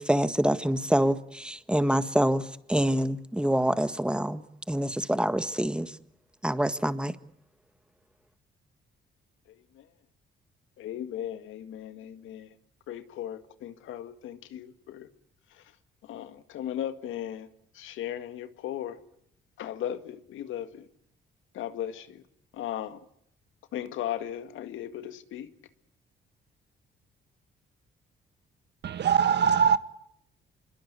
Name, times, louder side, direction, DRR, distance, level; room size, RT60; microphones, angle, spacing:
voice 1, 0.0-5.9 6.4-7.1, right 1 dB, 5° right, 1.7 m, -26 dB
voice 2, 10.8-12.5 12.9-15.1 16.1-17.5 17.7-19.0 19.6-20.9 21.5-22.2 22.5-23.0 23.7-25.5, left 11 dB, 80° left, 2.0 m, -37 dB
voice 3, 28.8-29.8, right 7 dB, 60° right, 1.6 m, -22 dB
26.5 x 22.0 x 8.3 m
cardioid pair, 90°, 20 cm